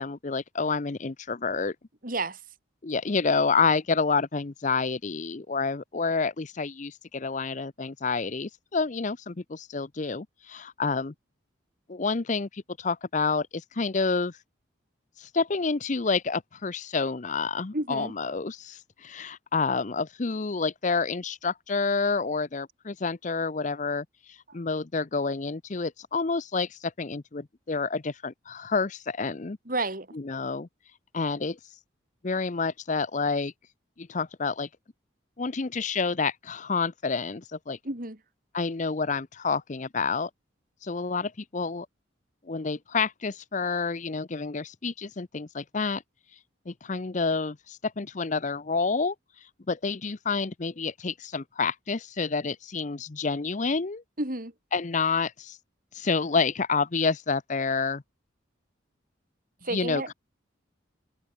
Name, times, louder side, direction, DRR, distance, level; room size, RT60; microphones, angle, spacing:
voice 1, 0.0-1.7 2.8-11.1 11.9-14.4 15.2-29.6 30.1-30.7 31.1-31.6 32.2-33.5 34.0-34.7 35.4-37.8 38.5-40.3 40.8-41.9 42.5-46.0 46.7-49.1 49.7-54.0 54.7-55.6 55.9-58.0 59.7-60.1, left 4 dB, 40° left, 0.6 m, -29 dB
voice 2, 2.0-2.4 17.7-18.1 29.7-30.1 37.8-38.2 54.2-54.5 59.6-60.1, right 2 dB, 45° right, 4.5 m, -31 dB
head